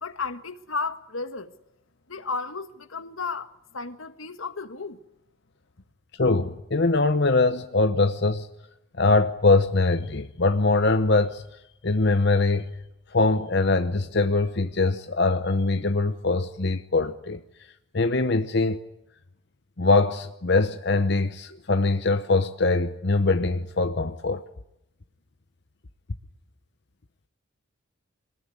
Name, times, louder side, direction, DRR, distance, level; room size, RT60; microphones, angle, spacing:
voice 1, 0.0-1.5 2.1-5.0, left 4 dB, 80° left, 1.5 m, -33 dB
voice 2, 6.2-8.5 9.0-11.4 11.8-12.6 13.1-17.4 17.9-18.8 19.8-24.4, left 3 dB, 55° left, 0.9 m, -22 dB
24.0 x 20.0 x 9.8 m
head